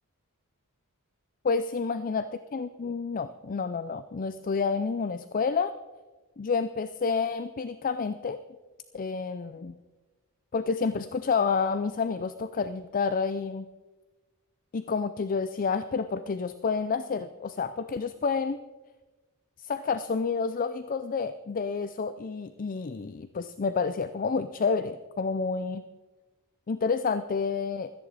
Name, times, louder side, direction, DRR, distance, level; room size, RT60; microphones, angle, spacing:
voice 1, 1.4-2.3 2.5-5.7 6.4-8.4 8.9-9.8 10.5-13.7 14.7-18.6 19.6-25.8 26.7-27.9, left 5 dB, 40° left, 12 dB, 0.4 m, -29 dB
17.0 x 14.0 x 4.1 m, 1.2 s
head